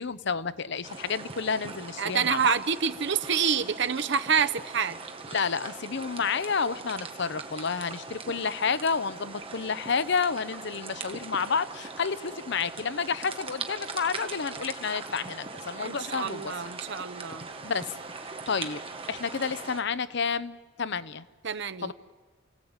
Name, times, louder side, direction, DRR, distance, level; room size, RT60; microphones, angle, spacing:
voice 1, 0.0-2.5 5.3-16.5 17.6-17.9 18.5-18.8 19.1-21.3 21.8-21.9, left 5 dB, 65° left, 14 dB, 0.9 m, -30 dB
sound 1, 0.8-19.8, right 4 dB, 30° right, 1.8 m, -41 dB
voice 2, 2.0-5.0 15.8-17.5 21.4-21.9, right 6 dB, 65° right, 11 dB, 0.9 m, -27 dB
29.0 x 17.0 x 9.0 m, 1.4 s
head